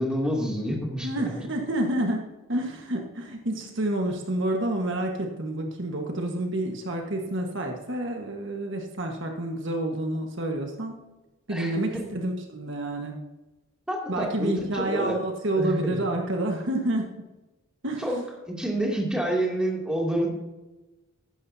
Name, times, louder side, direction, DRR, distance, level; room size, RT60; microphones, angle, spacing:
voice 1, 0.0-1.2 11.5-12.0 13.9-15.2 15.6-16.1 18.0-20.3, right 1 dB, 5° right, -2 dB, 2.7 m, -28 dB
voice 2, 1.0-2.2 2.5-11.0 11.5-13.1 14.1-17.2 17.8-18.1, right 1 dB, 60° right, 2 dB, 1.5 m, -29 dB
15.0 x 11.5 x 2.8 m, 1.1 s
head